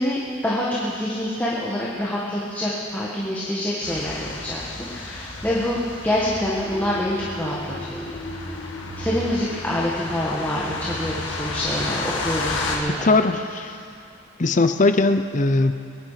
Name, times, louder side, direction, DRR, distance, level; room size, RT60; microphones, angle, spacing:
voice 1, 0.0-5.8 6.0-8.0 9.0-13.1, left 1 dB, 10° left, -6 dB, 1.6 m, -26 dB
sound 1, 3.8-12.8, left 2 dB, 80° left, 2.0 m, -32 dB
sound 2, 6.6-10.2, equal, 65° left, 3.8 m, -38 dB
voice 2, 13.0-13.7 14.4-15.7, left 3 dB, 40° left, 9 dB, 0.7 m, -19 dB
22.0 x 10.5 x 5.8 m, 2.7 s
head